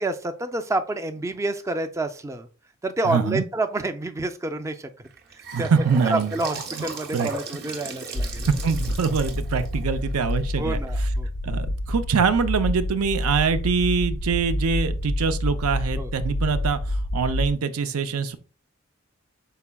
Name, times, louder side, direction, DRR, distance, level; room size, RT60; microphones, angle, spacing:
voice 1, 0.0-2.5 2.8-4.9 5.3-5.7 6.1-8.5 10.6-11.3 16.0-16.1, right 2 dB, 15° right, 0.3 m, -28 dB
voice 2, 3.0-3.4 5.5-6.3 7.1-7.3 8.4-10.8 11.4-18.4, right 5 dB, 90° right, 0.5 m, -24 dB
Gurgling / Sink (filling or washing) / Bathtub (filling or washing), 5.0-11.1, right 3 dB, 50° right, 0.8 m, -37 dB
sound 1, 8.2-17.5, left 1 dB, 50° left, 0.4 m, -28 dB
5.7 x 4.1 x 2.2 m
head